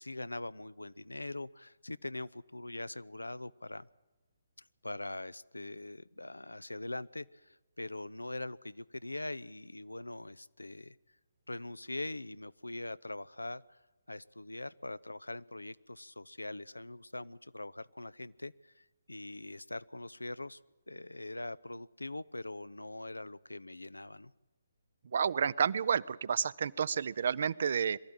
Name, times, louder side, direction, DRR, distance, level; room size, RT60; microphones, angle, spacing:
voice 1, 0.0-3.9 4.8-11.0 11.5-13.8 14.1-20.6 20.9-24.3, left 2 dB, 85° left, 19 dB, 0.6 m, -42 dB
voice 2, 25.1-28.0, right 7 dB, 55° right, 20 dB, 0.6 m, -30 dB
22.5 x 13.5 x 8.9 m, 1.1 s
figure-of-eight pair, 135°, 0 cm